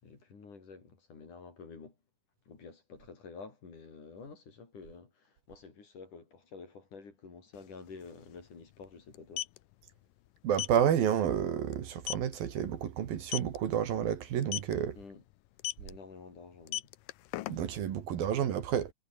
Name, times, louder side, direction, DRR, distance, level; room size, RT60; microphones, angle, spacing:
voice 1, 0.0-2.0 2.5-9.5 14.9-15.2 15.8-16.9, left 4 dB, 50° left, 6.3 m, -50 dB
sound 1, 7.5-7.6 7.9-8.1 9.1-9.6 10.5-10.8 11.2-11.4 11.7-11.8 12.1-12.3 13.2-13.6 14.4-14.7 15.6-15.9 16.5-17.8, left 17 dB, 75° left, 2.2 m, -35 dB
voice 2, 10.4-15.0 17.5-18.9, right 9 dB, 65° right, 3.6 m, -30 dB
omnidirectional pair, 4.6 m